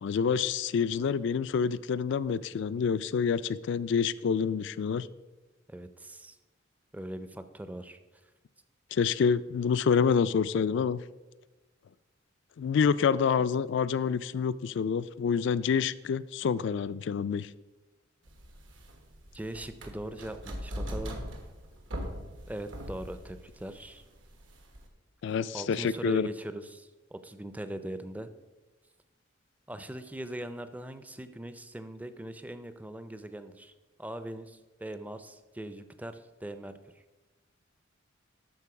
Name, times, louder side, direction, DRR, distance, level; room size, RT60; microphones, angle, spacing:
voice 1, 0.0-5.1 8.9-11.0 12.6-17.5 25.2-26.3, left 6 dB, 65° left, 17 dB, 0.3 m, -27 dB
voice 2, 5.7-6.4 6.9-8.0 19.3-21.2 22.5-24.0 25.5-28.3 29.7-33.7 34.0-36.7, right 1 dB, 10° right, 11 dB, 0.4 m, -41 dB
sound 1, 18.3-24.9, equal, 75° right, 1.3 m, -41 dB
12.5 x 4.6 x 4.8 m, 1.1 s
head